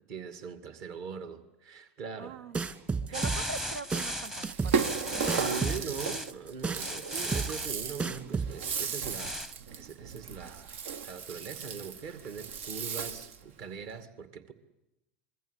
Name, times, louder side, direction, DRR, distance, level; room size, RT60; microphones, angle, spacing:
voice 1, 0.1-2.4 3.1-3.3 5.2-14.5, right 6 dB, 50° right, 10 dB, 2.4 m, -41 dB
voice 2, 2.2-5.9 6.8-7.3 12.7-13.2, right 4 dB, 85° right, 14 dB, 1.2 m, -45 dB
sound 1, 2.5-8.5, right 4 dB, 25° right, 2.1 m, -32 dB
sound 2, 3.1-6.3 6.7-7.7 9.1-9.5, equal, 5° right, 0.9 m, -36 dB
Rattle (instrument), 4.4-13.4, right 6 dB, 65° right, 1.0 m, -35 dB
26.0 x 22.0 x 8.4 m, 0.94 s
hypercardioid pair, 90°, 7 cm